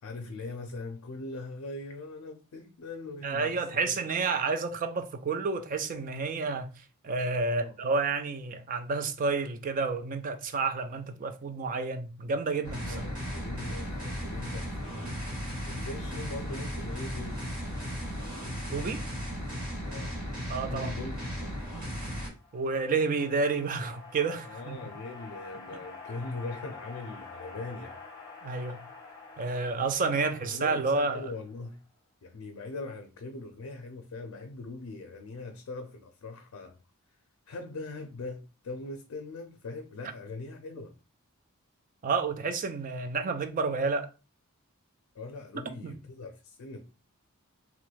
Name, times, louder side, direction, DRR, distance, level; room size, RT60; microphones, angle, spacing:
voice 1, 0.0-4.0 7.5-7.8 11.0-11.1 12.7-14.8 15.7-17.5 19.8-20.2 20.7-21.6 24.5-28.0 30.4-31.8 32.2-36.8 37.5-40.9 45.1-46.8, left 3 dB, 70° left, 0.4 m, -41 dB
voice 2, 3.2-6.7 7.0-12.9 18.7-19.0 20.5-20.9 22.5-24.8 28.4-28.8 29.4-31.3 42.0-44.1 45.8-45.9, right 4 dB, 35° right, 0.3 m, -30 dB
sound 1, 12.6-22.3, equal, 65° right, 1.7 m, -36 dB
sound 2, 22.2-31.7, left 4 dB, 20° left, 0.7 m, -48 dB
3.0 x 2.3 x 3.2 m
head